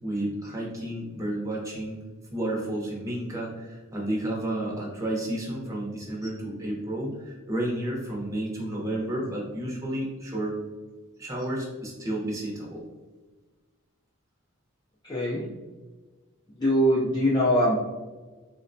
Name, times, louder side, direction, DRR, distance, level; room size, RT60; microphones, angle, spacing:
voice 1, 0.0-2.0 2.3-10.5 11.2-12.8, right 1 dB, 15° right, -3 dB, 0.7 m, -31 dB
voice 2, 15.0-15.5 16.6-17.8, equal, 20° left, -7 dB, 0.4 m, -22 dB
3.9 x 2.1 x 2.6 m, 1.3 s
head